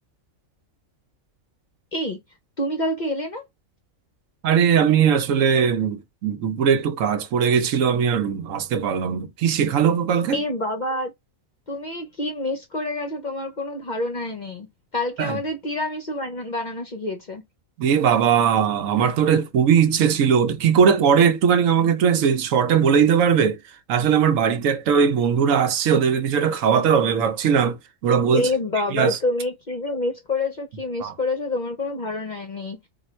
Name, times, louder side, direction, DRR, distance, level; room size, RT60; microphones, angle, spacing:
voice 1, 2.6-3.4 10.3-11.1 11.7-14.7 14.9-17.4 28.3-32.8, left 2 dB, 45° left, 0.6 m, -27 dB
voice 2, 4.4-10.4 15.2-15.4 17.8-23.6 23.9-28.5 28.9-29.2 31.0-31.1, right 7 dB, 70° right, 1.0 m, -19 dB
3.6 x 2.4 x 4.3 m
omnidirectional pair, 1.4 m